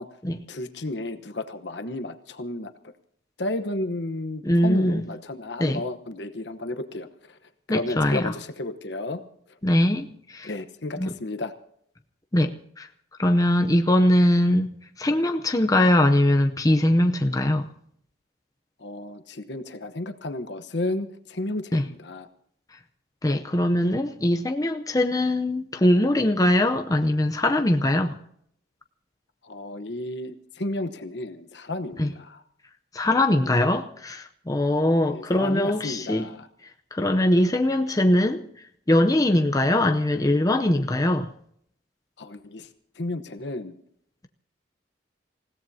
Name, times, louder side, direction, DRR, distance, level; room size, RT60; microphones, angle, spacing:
voice 1, 0.5-2.7 3.4-7.4 7.7-9.2 10.4-11.5 18.8-22.3 29.4-32.4 35.1-36.5 42.2-42.7 43.0-43.8, left 2 dB, 65° left, 8 dB, 1.0 m, -32 dB
voice 2, 4.4-5.1 5.6-5.8 7.7-8.3 9.6-10.5 11.0-11.1 12.3-12.5 12.8-12.9 13.2-14.7 15.0-17.7 21.7-21.8 23.2-28.2 32.0-32.1 32.9-36.3 36.9-38.4 38.9-41.3, left 1 dB, 20° left, 5 dB, 0.6 m, -21 dB
27.5 x 16.5 x 2.8 m, 0.68 s
head